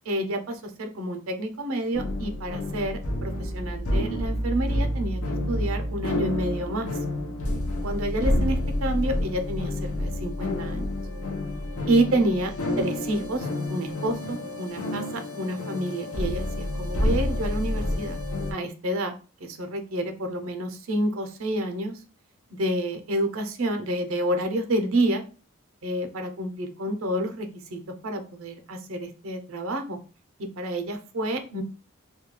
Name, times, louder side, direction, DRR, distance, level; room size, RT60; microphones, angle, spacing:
voice 1, 0.1-5.2 5.5-6.9 7.8-11.0 11.9-18.2 18.5-19.1 19.4-22.0 22.6-25.2 25.8-30.0 30.4-31.6, right 1 dB, 70° right, 6 dB, 0.5 m, -29 dB
sound 1, 1.9-18.5, left 1 dB, 85° left, 0.6 m, -29 dB
2.3 x 2.2 x 2.9 m, 0.36 s
head